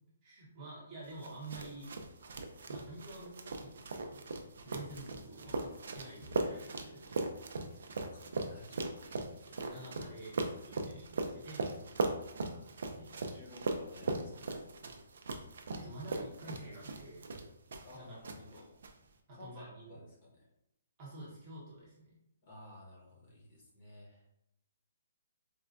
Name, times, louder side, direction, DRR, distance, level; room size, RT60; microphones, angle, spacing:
voice 1, 0.2-1.9 2.7-4.3 4.6-7.2 8.2-8.3 9.6-10.4 10.6-11.7 12.5-13.2 15.7-17.3 17.9-18.2 19.3-20.0 21.0-22.2, right 2 dB, 20° right, -6 dB, 1.0 m, -49 dB
sound 1, 1.2-18.0 18.2-18.9, right 3 dB, 55° right, 0.4 m, -39 dB
sound 2, 4.9-12.2, equal, ahead, 1.0 m, -58 dB
voice 2, 7.9-9.7 10.2-10.5 11.6-11.9 13.2-14.8 17.8-18.7 19.3-20.5 22.4-24.3, left 1 dB, 30° left, -3 dB, 0.8 m, -54 dB
4.3 x 2.2 x 2.5 m, 0.82 s
hypercardioid pair, 180°, 0 cm